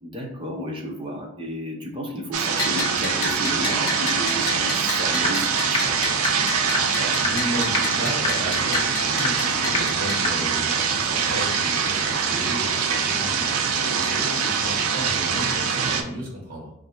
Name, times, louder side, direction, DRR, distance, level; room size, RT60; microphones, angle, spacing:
voice 1, 0.0-6.2 14.2-14.6, equal, 25° right, 0 dB, 0.6 m, -33 dB
sound 1, 2.3-16.0, right 6 dB, 80° right, 0.5 m, -24 dB
Bell, 2.6-10.2, left 4 dB, 80° left, 0.6 m, -32 dB
sound 2, 5.2-5.3 5.7-5.8 6.2-6.3 6.7-6.8 7.2-7.3 7.7-7.8 8.2-8.3 8.7-8.8 9.2-9.3 9.7-9.8 10.2-10.3, left 3 dB, 25° left, 0.5 m, -23 dB
voice 2, 6.5-16.7, right 1 dB, 40° right, -2 dB, 1.3 m, -34 dB
2.8 x 2.5 x 4.2 m, 0.78 s
head